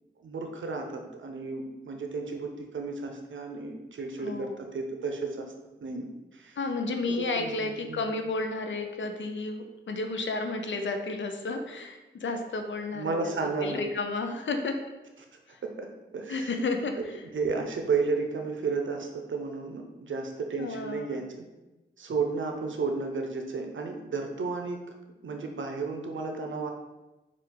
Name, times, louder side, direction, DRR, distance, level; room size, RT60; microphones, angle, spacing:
voice 1, 0.2-5.5 5.8-6.6 7.1-8.0 12.9-13.8 15.6-15.9 16.1-16.5 17.3-21.5 22.0-24.8 25.2-26.7, right 4 dB, 85° right, 3 dB, 0.6 m, -33 dB
voice 2, 4.2-4.5 6.6-13.3 13.6-14.8 15.5-15.6 16.3-17.0 20.6-21.2, left 3 dB, 80° left, 5 dB, 0.5 m, -32 dB
4.4 x 2.4 x 3.7 m, 1.1 s
wide cardioid pair, 65°, 19 cm